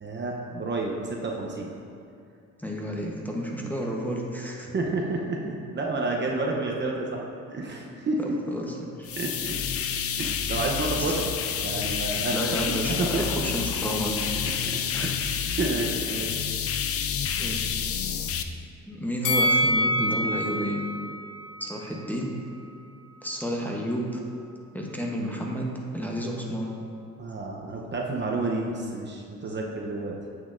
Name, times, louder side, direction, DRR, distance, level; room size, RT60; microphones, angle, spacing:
voice 1, 0.0-1.7 3.5-3.7 4.7-8.2 9.2-9.6 10.2-11.3 11.6-12.4 12.8-13.3 14.4-15.2 15.5-16.3 27.2-30.2, right 3 dB, 35° right, -1 dB, 0.8 m, -30 dB
voice 2, 2.6-4.7 8.2-9.1 11.0-11.1 12.3-14.2 14.9-15.1 17.4-17.7 18.9-20.8 21.6-22.3 23.2-24.2 24.7-25.7 25.9-26.7, equal, 5° left, -1 dB, 0.9 m, -31 dB
sound 1, 9.1-18.4, left 8 dB, 50° left, 0.5 m, -29 dB
Bell, 19.2-22.4 22.8-22.9, equal, 85° left, 0.8 m, -27 dB
9.2 x 6.3 x 2.5 m, 2.4 s
cardioid pair, 90°, 30 cm